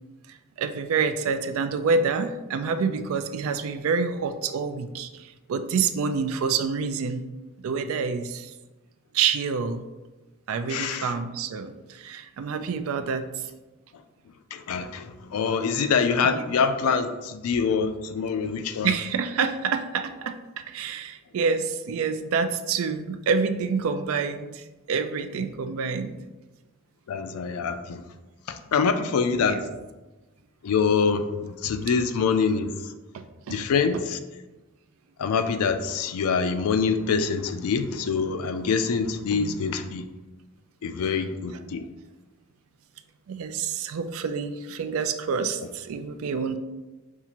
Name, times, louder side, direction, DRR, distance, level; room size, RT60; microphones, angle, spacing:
voice 1, 0.3-7.3 7.6-8.5 9.1-9.8 10.5-13.5 16.2-16.5 18.8-26.2 29.4-29.6 33.1-33.6 39.3-39.6 43.3-46.6, right 5 dB, 70° right, 9 dB, 0.3 m, -27 dB
voice 2, 10.7-11.1 14.5-18.9 27.1-28.0 28.5-29.7 30.6-32.7 33.5-34.2 35.2-40.0 40.8-41.8, left 5 dB, 85° left, 9 dB, 0.4 m, -25 dB
5.5 x 2.4 x 2.9 m, 1.1 s
head